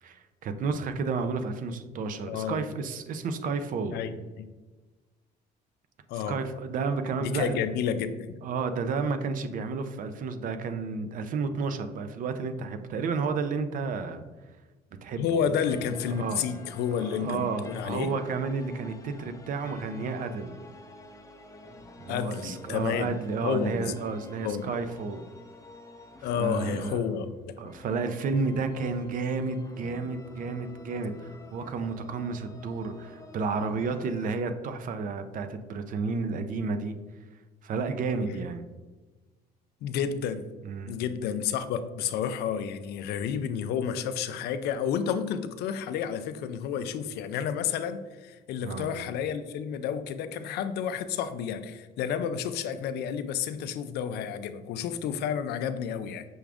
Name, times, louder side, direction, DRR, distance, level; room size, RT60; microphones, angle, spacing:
voice 1, 0.0-4.0 6.1-7.6 8.4-14.2 15.0-15.5 16.1-16.4 16.9-20.6 22.0-25.3 26.4-27.0 27.6-36.9 37.6-38.7 40.6-40.9 48.6-48.9, right 4 dB, 55° right, 9 dB, 0.5 m, -31 dB
voice 2, 2.3-2.6 3.9-4.1 4.4-4.5 6.1-6.4 7.2-8.4 15.2-18.1 22.1-23.1 23.4-24.0 24.4-24.7 26.2-27.6 39.8-40.5 40.9-56.3, left 8 dB, 75° left, 11 dB, 0.4 m, -30 dB
sound 1, 15.6-34.3, left 2 dB, 20° left, 0.6 m, -49 dB
6.1 x 2.4 x 3.4 m, 1.3 s
cardioid pair, 110°, 17 cm